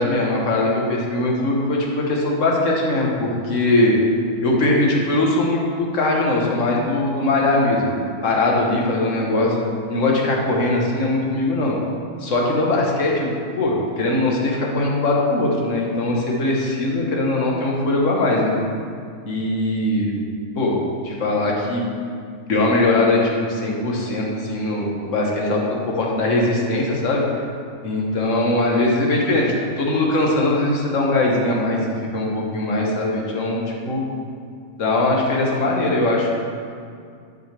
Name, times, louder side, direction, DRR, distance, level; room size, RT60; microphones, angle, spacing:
voice 1, 0.0-3.9 4.4-9.6 9.9-11.8 12.2-13.3 13.5-18.5 19.3-20.2 20.5-21.8 22.4-27.2 27.8-31.8 32.1-34.0 34.8-36.3, left 2 dB, 60° left, -2 dB, 1.6 m, -21 dB
11.0 x 6.6 x 3.4 m, 2.3 s
omnidirectional pair, 1.5 m